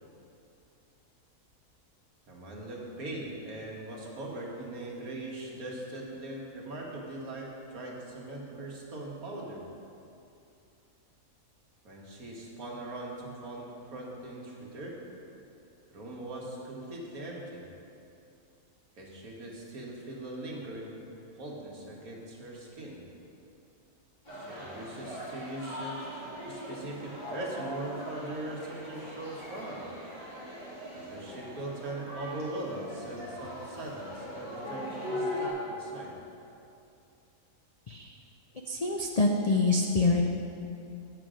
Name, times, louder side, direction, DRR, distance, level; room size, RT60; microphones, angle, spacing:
voice 1, 2.3-9.6 11.8-15.0 15.9-17.6 19.0-20.9 21.4-23.0 24.3-29.8 30.9-36.1, right 1 dB, 75° right, -3 dB, 1.9 m, -40 dB
sound 1, 24.3-35.5, left 1 dB, 30° left, 2.6 m, -40 dB
voice 2, 38.7-40.2, left 3 dB, 75° left, 1 dB, 0.3 m, -26 dB
9.2 x 7.8 x 5.0 m, 2.7 s
omnidirectional pair, 1.5 m